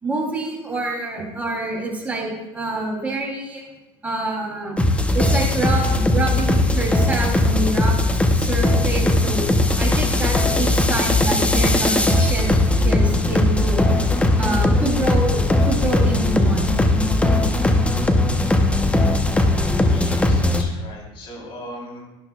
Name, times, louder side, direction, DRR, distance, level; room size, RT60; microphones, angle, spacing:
voice 1, 0.0-3.6 4.0-4.8 5.1-8.0 8.3-9.4 9.8-12.5 12.8-13.9 14.4-15.4 15.6-16.8, right 2 dB, 15° right, -2 dB, 3.3 m, -26 dB
sound 1, 4.8-20.6, left 2 dB, 10° left, 0.8 m, -18 dB
voice 2, 19.6-22.0, equal, 45° left, -1 dB, 3.7 m, -39 dB
12.0 x 11.0 x 2.4 m, 1.0 s
supercardioid pair, 105°, 12 cm